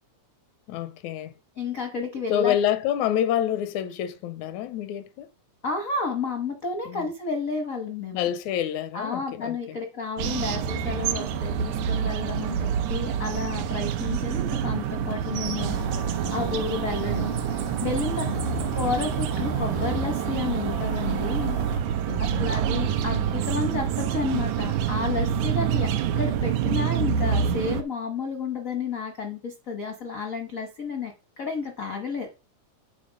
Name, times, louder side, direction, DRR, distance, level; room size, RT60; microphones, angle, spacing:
voice 1, 0.7-1.3 2.3-5.3 6.9-7.1 8.1-9.8 18.2-18.7 22.1-22.5, left 10 dB, 90° left, 2.1 m, -28 dB
voice 2, 1.6-2.5 5.6-8.3 8.9-18.2 18.7-21.6 21.9-25.9 26.2-31.1 31.4-32.3, left 4 dB, 75° left, 0.7 m, -31 dB
sound 1, 10.2-27.8, right 9 dB, 90° right, 2.1 m, -27 dB
sound 2, 10.3-26.2, right 6 dB, 75° right, 2.1 m, -36 dB
sound 3, 15.6-21.8, right 2 dB, 50° right, 0.6 m, -36 dB
8.6 x 4.2 x 5.1 m
omnidirectional pair, 3.3 m